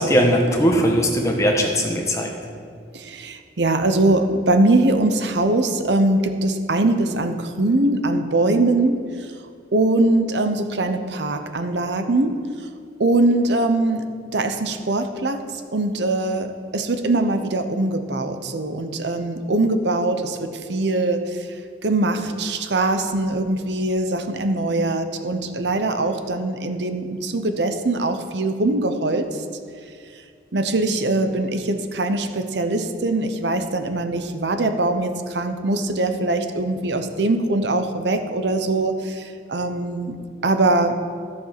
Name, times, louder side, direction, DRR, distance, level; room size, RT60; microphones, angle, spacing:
voice 1, 0.0-2.3, equal, 15° left, 1 dB, 1.3 m, -19 dB
voice 2, 2.9-9.0 9.7-12.4 13.0-14.1 14.3-15.5 15.7-21.5 21.8-29.3 30.5-40.2 40.4-41.0, right 2 dB, 75° right, 8 dB, 0.9 m, -22 dB
13.5 x 7.6 x 5.9 m, 2.2 s
head